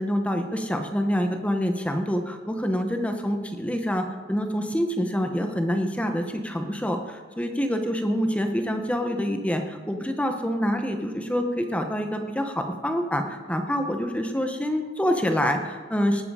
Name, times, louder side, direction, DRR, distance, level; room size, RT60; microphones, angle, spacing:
voice 1, 0.0-16.2, equal, 5° left, 5 dB, 0.9 m, -26 dB
19.5 x 7.8 x 4.9 m, 1.5 s
head